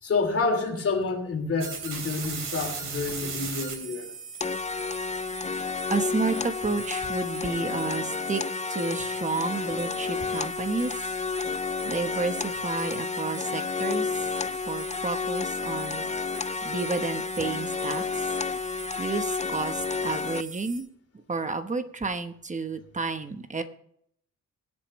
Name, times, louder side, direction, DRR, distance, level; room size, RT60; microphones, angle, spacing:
voice 1, 0.0-4.1, left 4 dB, 45° left, 4 dB, 3.1 m, -28 dB
sound 1, 1.6-20.8, right 6 dB, 85° right, 3.5 m, -40 dB
sound 2, 4.4-20.4, left 5 dB, 25° left, 0.4 m, -31 dB
voice 2, 5.9-8.4 8.7-11.0 11.8-14.3 14.7-16.1 16.6-18.3 18.7-20.9 21.1-23.6, right 4 dB, 25° right, 8 dB, 1.1 m, -31 dB
22.5 x 8.4 x 3.2 m, 0.69 s
cardioid pair, 115°, 31 cm